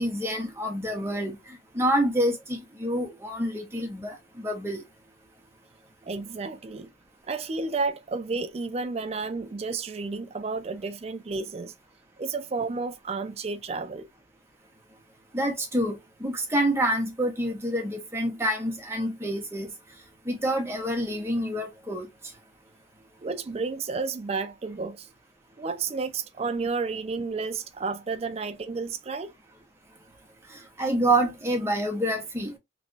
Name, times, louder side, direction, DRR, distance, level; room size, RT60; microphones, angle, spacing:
voice 1, 0.0-4.8 15.3-19.7 20.3-22.1 30.5-32.5, right 1 dB, 15° right, 0.9 m, -27 dB
voice 2, 6.1-6.9 7.3-11.7 12.2-14.1 23.2-25.1 25.6-29.3, right 4 dB, 30° right, 0.4 m, -31 dB
3.3 x 3.1 x 2.7 m
head